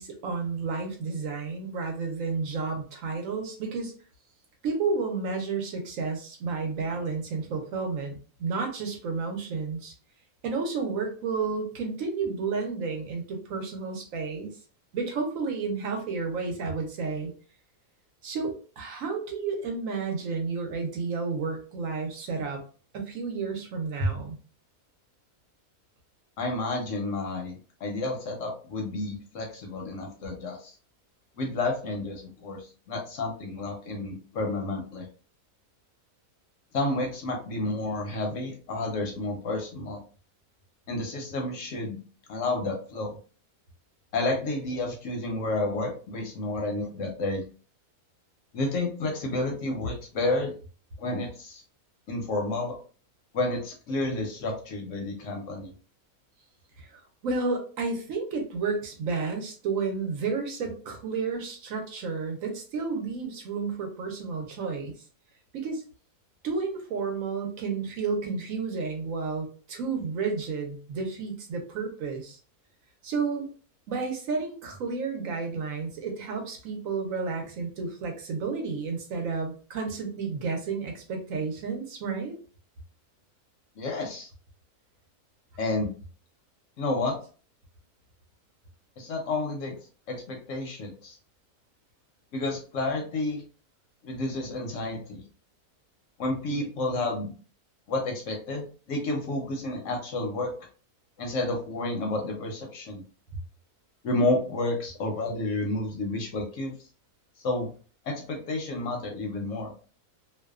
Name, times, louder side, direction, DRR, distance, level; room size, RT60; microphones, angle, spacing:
voice 1, 0.0-3.9 4.6-9.9 10.4-14.6 14.9-17.3 18.2-22.6 22.9-24.4 56.8-64.9 65.5-65.8 66.4-72.4 73.0-73.5 73.9-82.3, right 4 dB, 70° right, 2 dB, 1.0 m, -31 dB
voice 2, 26.4-30.7 31.4-35.1 36.7-40.0 40.9-42.0 42.3-43.2 44.1-47.4 48.5-50.5 51.0-51.6 52.1-52.8 53.3-55.7 83.8-84.3 85.6-85.9 86.8-87.2 89.0-91.2 92.3-93.4 94.0-95.2 96.2-97.3 97.9-100.5 101.2-103.0 104.0-106.7 107.4-107.7 108.0-109.7, left 2 dB, 70° left, 1 dB, 0.8 m, -30 dB
2.5 x 2.2 x 2.3 m, 0.39 s
omnidirectional pair, 1.6 m